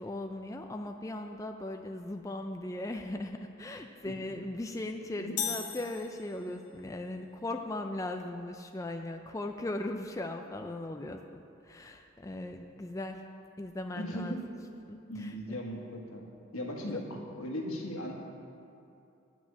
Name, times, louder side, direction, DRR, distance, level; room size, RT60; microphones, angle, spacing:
voice 1, 0.0-13.2 13.6-14.4 14.9-15.4 16.9-17.0, left 1 dB, 15° left, 4 dB, 0.3 m, -38 dB
voice 2, 5.1-5.5 6.5-6.6 13.9-14.5 15.1-18.1, equal, 85° left, 0 dB, 1.7 m, -38 dB
sound 1, 5.4-6.8, left 8 dB, 50° left, 0.7 m, -37 dB
10.0 x 6.1 x 8.4 m, 2.7 s
head